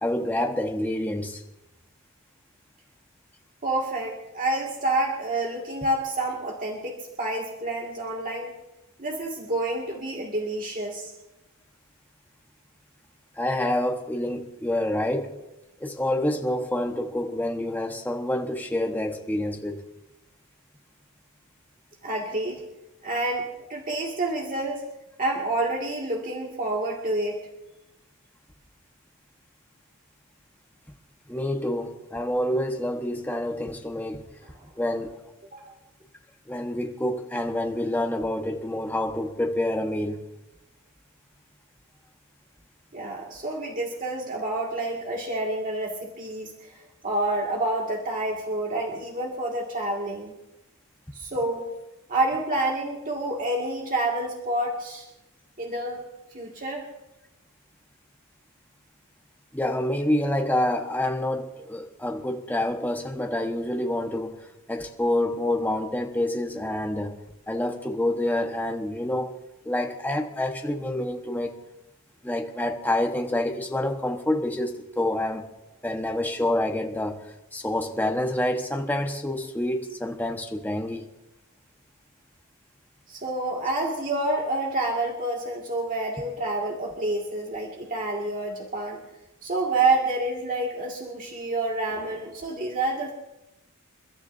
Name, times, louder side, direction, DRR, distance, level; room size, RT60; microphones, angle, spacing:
voice 1, 0.0-1.4 13.4-15.3 15.8-19.8 31.3-34.2 34.8-35.1 36.5-40.2 59.5-64.4 64.7-67.1 67.5-69.3 69.6-71.6 72.2-75.4 75.8-77.2 77.5-81.1, left 1 dB, 10° left, 1.3 m, -27 dB
voice 2, 3.6-8.5 9.0-11.1 22.0-22.6 23.0-24.9 25.2-27.4 34.4-34.5 35.5-35.7 42.9-46.8 47.0-50.3 51.1-51.7 52.1-55.1 55.6-56.0 56.3-56.9 83.1-89.0 89.4-93.1, right 2 dB, 40° right, 2.1 m, -28 dB
29.5 x 13.0 x 2.7 m
head